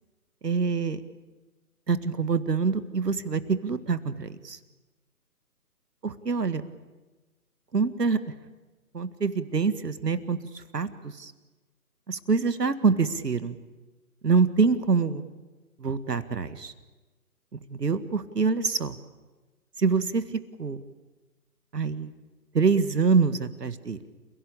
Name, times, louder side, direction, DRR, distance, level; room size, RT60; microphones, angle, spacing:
voice 1, 0.4-1.0 1.9-4.6 6.0-6.6 7.7-8.2 8.9-11.3 12.1-13.6 14.2-15.2 15.8-16.7 17.5-19.0 19.8-20.2 20.6-20.8 21.7-22.1 22.5-24.1, right 5 dB, 80° right, 12 dB, 1.9 m, -25 dB
29.5 x 17.0 x 8.8 m, 1.2 s
figure-of-eight pair, 150°, 47 cm